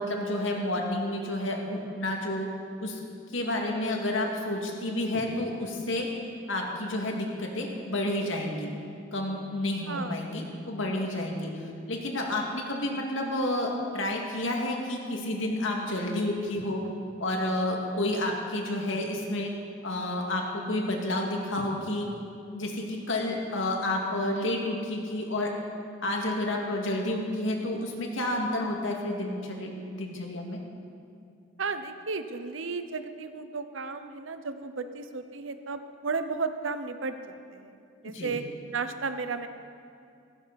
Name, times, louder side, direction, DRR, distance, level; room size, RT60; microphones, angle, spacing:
voice 1, 0.0-2.5 2.8-3.0 3.3-6.1 6.5-8.7 9.1-11.5 11.9-16.8 17.2-19.5 19.8-22.1 22.5-25.5 26.0-30.6 38.0-38.4, left 1 dB, 80° left, 1 dB, 2.2 m, -30 dB
voice 2, 9.9-10.2 31.6-37.7 38.0-38.4 38.7-39.5, right 4 dB, 80° right, 9 dB, 0.9 m, -34 dB
16.5 x 15.5 x 4.2 m, 2.5 s
head